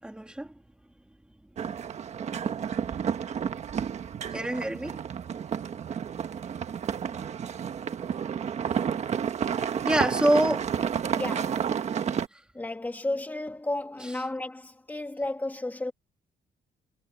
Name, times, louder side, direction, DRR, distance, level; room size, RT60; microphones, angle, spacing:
voice 1, 0.0-0.6 4.3-5.0 9.5-10.7 12.3-12.4, right 1 dB, 5° right, 3.0 m, -26 dB
sound 1, 1.6-12.3, right 8 dB, 45° right, 1.4 m, -31 dB
voice 2, 11.1-11.6 12.5-15.9, left 2 dB, 10° left, 2.5 m, -33 dB
cardioid pair, 135°, 16 cm